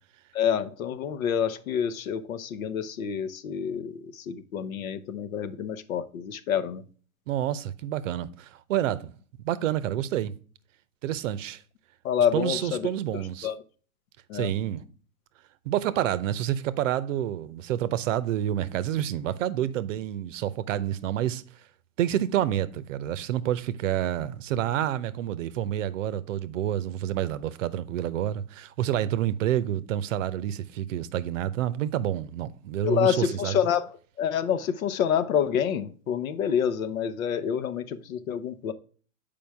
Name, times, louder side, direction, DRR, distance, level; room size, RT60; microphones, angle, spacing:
voice 1, 0.3-6.8 12.0-12.8 13.4-13.6 14.3-14.5 32.8-33.9 34.2-38.7, left 8 dB, 65° left, 0.9 m, -27 dB
voice 2, 7.3-9.1 9.4-10.3 11.0-11.6 12.3-13.5 14.3-14.9 15.7-21.4 22.0-33.6, right 11 dB, 60° right, 0.7 m, -28 dB
7.1 x 5.1 x 3.4 m
hypercardioid pair, 115°, 44 cm